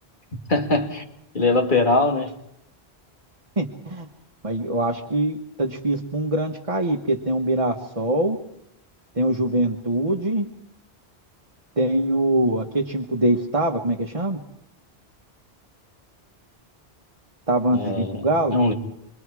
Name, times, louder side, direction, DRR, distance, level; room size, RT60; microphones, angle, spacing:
voice 1, 0.5-1.0 1.3-2.3 17.7-18.3 18.5-18.7, left 2 dB, 50° left, 2.3 m, -21 dB
voice 2, 3.6-4.1 4.4-8.4 9.1-10.5 11.8-14.4 17.5-18.6, right 1 dB, 30° right, 1.4 m, -23 dB
28.5 x 23.0 x 4.8 m
omnidirectional pair, 1.1 m